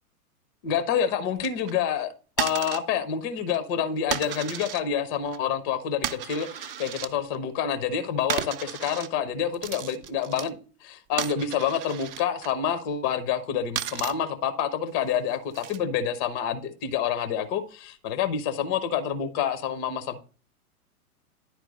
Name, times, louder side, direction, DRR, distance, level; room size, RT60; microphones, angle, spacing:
voice 1, 0.6-2.1 2.4-20.2, left 8 dB, 15° left, 0.4 m, -28 dB
sound 1, 1.4-1.7 2.4-2.8 3.3-3.6 4.1-4.8 5.1-5.4 6.0-7.4 8.3-9.1 9.3-10.5 11.2-12.5 13.7-14.1 15.0-15.8 17.0-17.3, right 10 dB, 40° right, 0.5 m, -34 dB
10.5 x 4.4 x 4.0 m
figure-of-eight pair, 105°, 46 cm